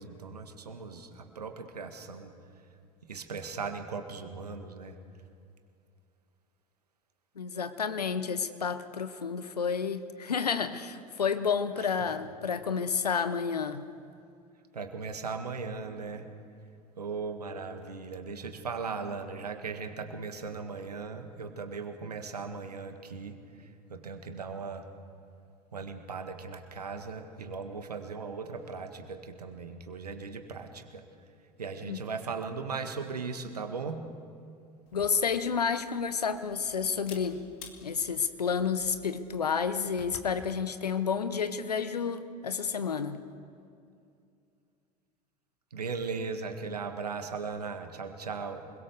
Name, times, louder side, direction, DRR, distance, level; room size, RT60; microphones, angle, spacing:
voice 1, 0.0-2.3 3.1-5.0 11.8-12.2 14.7-16.3 17.0-24.9 25.7-31.0 31.6-34.1 45.7-48.7, right 4 dB, 75° right, 7 dB, 1.8 m, -38 dB
voice 2, 7.4-13.9 31.8-32.0 34.9-37.4 37.8-43.2, left 6 dB, 80° left, 11 dB, 1.1 m, -30 dB
Camera, 34.9-40.4, left 6 dB, 55° left, 2.8 m, -53 dB
27.0 x 21.5 x 6.9 m, 2.5 s
figure-of-eight pair, 75°, 20 cm